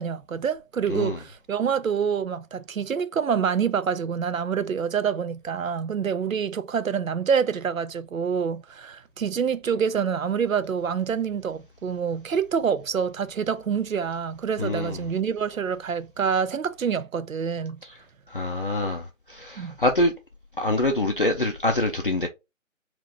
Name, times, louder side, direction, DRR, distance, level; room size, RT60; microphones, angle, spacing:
voice 1, 0.0-17.8 19.6-19.8, right 7 dB, 80° right, 0.6 m, -26 dB
voice 2, 0.9-1.2 14.6-15.0 18.3-20.1 20.6-22.3, left 2 dB, 45° left, 0.4 m, -25 dB
3.5 x 2.5 x 2.6 m
figure-of-eight pair, 150°, 40 cm